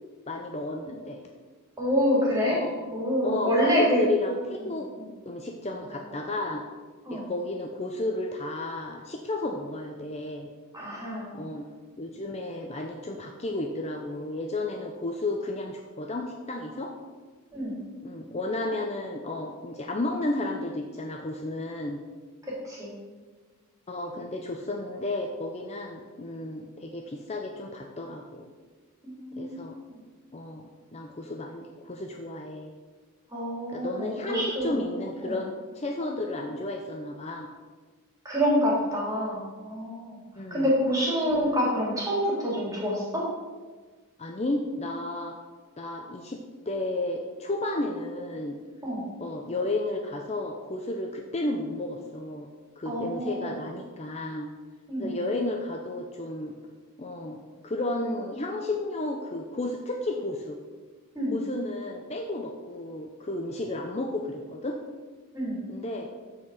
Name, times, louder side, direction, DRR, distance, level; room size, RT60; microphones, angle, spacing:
voice 1, 0.3-1.2 2.5-2.8 3.2-4.9 5.3-6.6 7.1-10.5 11.3-11.7 12.0-16.9 18.0-22.0 23.9-28.5 29.3-29.8 30.3-32.7 33.7-37.5 40.4-40.7 44.2-45.4 45.8-48.6 49.2-52.5 52.8-54.5 55.0-56.5 57.0-57.4 57.6-60.6 61.3-64.8 65.7-66.1, left 2 dB, 30° left, 2 dB, 0.6 m, -32 dB
voice 2, 1.8-2.6 2.9-4.0 5.0-5.1 7.0-7.2 10.7-11.4 17.5-17.8 22.5-23.0 29.0-30.0 33.3-34.8 35.2-35.4 38.2-40.2 40.5-43.3 48.8-49.0 52.8-53.5 54.9-55.1 61.1-61.3 65.3-65.6, equal, 15° right, -5 dB, 3.1 m, -27 dB
13.0 x 4.6 x 4.9 m, 1.4 s
head